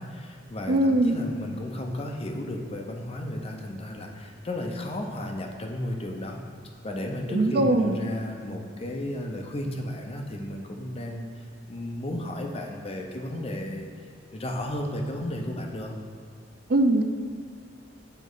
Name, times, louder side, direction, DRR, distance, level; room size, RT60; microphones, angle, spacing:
voice 1, 0.0-6.4 6.8-11.3 11.7-13.9 14.3-15.9, left 1 dB, 30° left, 2 dB, 0.5 m, -33 dB
voice 2, 0.7-1.2 7.3-8.0 16.7-17.0, right 1 dB, 50° right, 6 dB, 0.4 m, -21 dB
9.0 x 3.1 x 3.8 m, 2.2 s
head